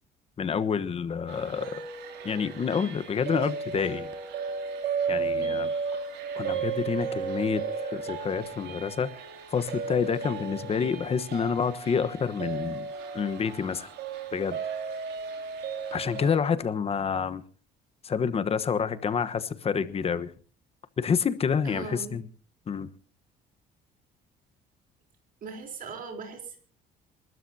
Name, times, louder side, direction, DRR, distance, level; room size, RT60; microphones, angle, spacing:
voice 1, 0.4-1.8 2.2-4.1 5.1-5.7 6.4-7.6 7.9-9.1 9.5-12.9 13.1-13.9 14.3-14.6 15.9-17.4 18.0-20.3 21.0-22.2 22.7-22.9, left 6 dB, 35° left, 1.2 m, -28 dB
sound 1, 1.3-16.4, right 5 dB, 80° right, 3.0 m, -34 dB
voice 2, 21.6-22.2 25.4-26.6, right 5 dB, 55° right, 3.9 m, -40 dB
27.5 x 12.5 x 2.8 m
cardioid pair, 110°, 17 cm